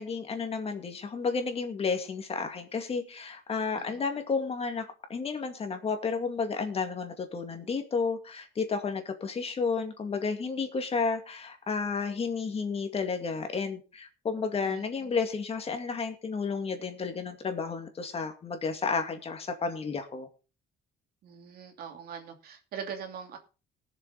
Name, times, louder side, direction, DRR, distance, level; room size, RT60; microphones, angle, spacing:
voice 1, 0.0-20.3, left 5 dB, 35° left, 6 dB, 2.3 m, -32 dB
voice 2, 14.6-15.1 21.2-23.4, right 7 dB, 65° right, 4 dB, 2.7 m, -42 dB
19.5 x 7.2 x 4.0 m, 0.33 s
cardioid pair, 110°, 17 cm